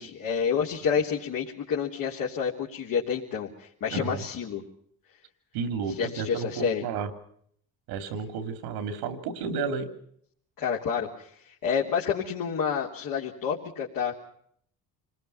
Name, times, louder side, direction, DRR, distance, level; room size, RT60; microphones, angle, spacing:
voice 1, 0.0-4.6 5.9-6.8 10.6-14.1, left 7 dB, 60° left, -4 dB, 3.5 m, -29 dB
voice 2, 3.9-4.2 5.5-7.1 7.9-9.9, right 5 dB, 85° right, 9 dB, 3.1 m, -32 dB
27.5 x 20.5 x 5.7 m, 0.65 s
supercardioid pair, 80°, 37 cm